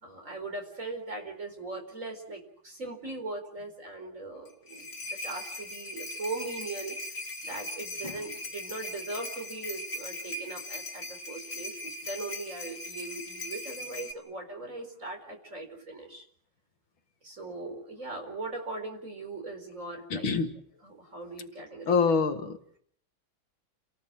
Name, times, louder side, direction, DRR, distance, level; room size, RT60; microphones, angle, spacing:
voice 1, 0.0-7.0 7.4-16.3 17.2-20.3 20.8-22.1, right 3 dB, 40° right, 4 dB, 4.7 m, -40 dB
sound 1, 4.4-14.1, left 1 dB, 40° left, 2.6 m, -39 dB
voice 2, 20.1-20.6 21.9-22.8, left 5 dB, 85° left, 7 dB, 2.5 m, -26 dB
29.5 x 18.5 x 7.6 m, 0.64 s
omnidirectional pair, 2.2 m